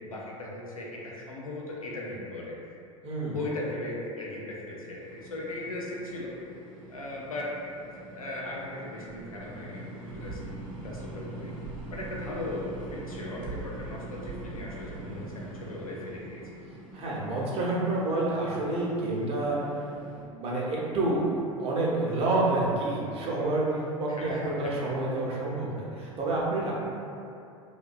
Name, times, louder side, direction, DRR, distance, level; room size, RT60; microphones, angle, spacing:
voice 1, 0.0-2.6 3.3-6.4 6.9-7.5 7.9-10.4 10.8-11.5 11.9-16.4 24.1-24.9, left 2 dB, 90° left, -3 dB, 0.4 m, -38 dB
voice 2, 3.0-3.4 16.9-19.6 20.2-26.7, right 2 dB, 35° right, -5 dB, 0.6 m, -28 dB
sound 1, 5.0-20.2, right 2 dB, 75° right, 0.5 m, -43 dB
2.6 x 2.2 x 2.4 m, 2.6 s
figure-of-eight pair, 75°, 17 cm